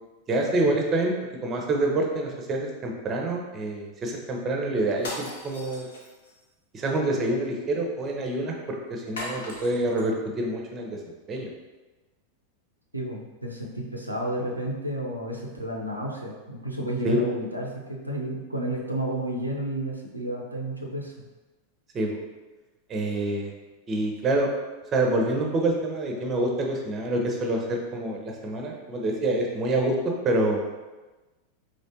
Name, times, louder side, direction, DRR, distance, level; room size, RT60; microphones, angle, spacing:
voice 1, 0.3-1.1 1.4-5.9 6.7-11.0 11.3-11.5 17.0-17.2 21.9-22.2 22.9-23.5 23.9-24.5 24.9-30.0 30.2-30.6, right 2 dB, 25° right, 1 dB, 0.7 m, -26 dB
sound 1, 4.9-6.4 9.2-10.1, left 1 dB, 65° left, 0.8 m, -38 dB
voice 2, 12.9-21.1, right 1 dB, 85° right, -2 dB, 0.5 m, -31 dB
4.2 x 3.1 x 2.7 m, 1.2 s
figure-of-eight pair, 90°, 0 cm